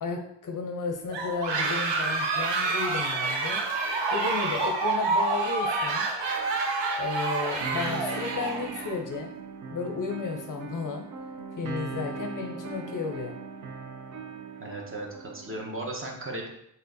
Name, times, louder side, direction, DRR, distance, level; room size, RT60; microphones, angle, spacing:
voice 1, 0.0-3.6 4.1-6.1 7.0-9.4 9.7-11.1 11.6-13.4, left 4 dB, 45° left, 4 dB, 0.6 m, -33 dB
sound 1, 1.1-9.0, right 3 dB, 75° right, 0.8 m, -28 dB
sound 2, 7.6-15.6, right 4 dB, 45° right, 0.5 m, -39 dB
voice 2, 14.6-16.5, right 2 dB, 30° right, 0 dB, 0.9 m, -36 dB
4.4 x 3.4 x 2.6 m, 0.74 s
cardioid pair, 95°, 44 cm